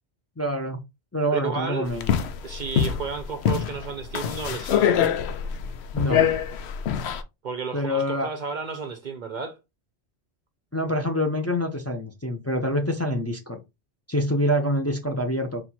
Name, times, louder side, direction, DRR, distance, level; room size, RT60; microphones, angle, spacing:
voice 1, 0.4-0.8 1.1-2.1 5.9-6.3 7.7-8.3 10.7-13.6 14.1-15.6, equal, 15° left, 0.7 m, -26 dB
voice 2, 1.3-1.9 2.4-5.1 7.4-9.6, right 5 dB, 50° right, 0.7 m, -32 dB
sound 1, 1.9-7.2, left 9 dB, 75° left, 0.9 m, -24 dB
4.3 x 2.7 x 4.1 m
omnidirectional pair, 1.1 m